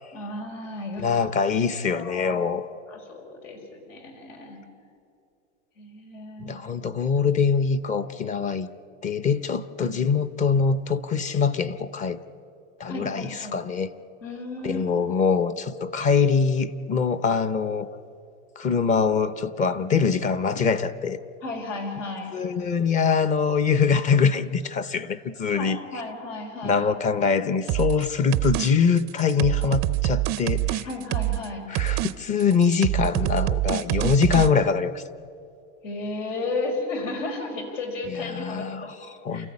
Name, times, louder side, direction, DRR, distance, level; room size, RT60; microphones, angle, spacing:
voice 1, 0.1-1.2 1.9-2.4 2.9-4.6 5.8-6.6 9.8-9.9 12.9-13.6 14.2-15.1 21.4-22.3 25.5-26.8 30.8-31.6 35.8-38.9 39.3-39.5, left 3 dB, 85° left, 3 dB, 5.0 m, -34 dB
voice 2, 1.0-2.6 6.4-8.7 9.0-12.2 12.8-13.9 14.6-17.9 18.6-21.2 22.3-25.8 26.6-30.9 31.7-35.0 38.1-39.5, left 5 dB, 20° left, 14 dB, 0.6 m, -23 dB
sound 1, 27.7-28.0 28.3-28.7 29.0-31.5 31.8-32.1 32.4-34.5, right 17 dB, 30° right, 0.5 m, -25 dB
29.0 x 14.0 x 9.7 m, 2.5 s
supercardioid pair, 145°, 37 cm